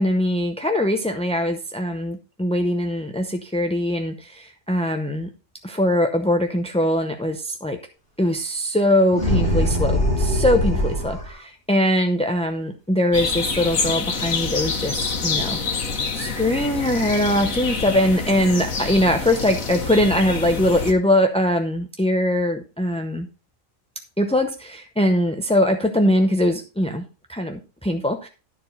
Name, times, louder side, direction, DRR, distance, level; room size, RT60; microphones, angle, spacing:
voice 1, 0.0-5.3 5.6-7.8 8.2-15.6 16.1-23.3 24.2-28.3, left 1 dB, 5° left, 4 dB, 0.5 m, -22 dB
sound 1, 9.1-11.3, left 1 dB, 45° left, 3.5 m, -21 dB
sound 2, 13.1-20.9, left 5 dB, 85° left, 1.8 m, -27 dB
12.5 x 4.7 x 5.4 m, 0.33 s
omnidirectional pair, 1.4 m